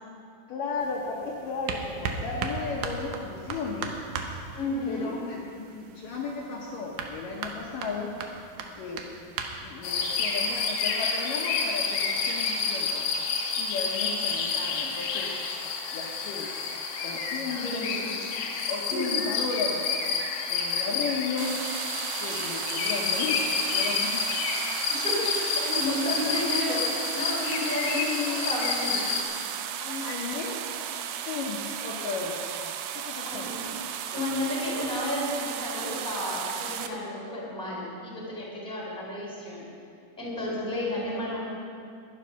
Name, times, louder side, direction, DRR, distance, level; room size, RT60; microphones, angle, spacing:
voice 1, 0.5-4.0 4.8-8.2 8.8-9.1 9.6-13.1 13.6-15.3 15.9-16.5 17.0-18.0 18.7-19.9 20.5-21.5 22.2-24.4 25.9-26.7 27.9-28.5 30.0-30.6 31.2-32.4 32.9-33.5 40.5-40.6, left 4 dB, 70° left, -2 dB, 2.4 m, -34 dB
sound 1, 0.8-10.6, right 4 dB, 75° right, 1.9 m, -38 dB
voice 2, 4.5-5.1 17.5-18.1 18.9-19.2 25.0-25.1 25.5-29.0 29.8-30.2 33.0-33.6 34.1-39.6 40.2-41.4, left 1 dB, ahead, -4 dB, 3.0 m, -32 dB
sound 2, 9.8-29.2, left 5 dB, 85° left, 3.1 m, -29 dB
sound 3, 21.4-36.9, right 9 dB, 90° right, 2.6 m, -35 dB
12.5 x 11.0 x 5.8 m, 2.4 s
omnidirectional pair, 4.5 m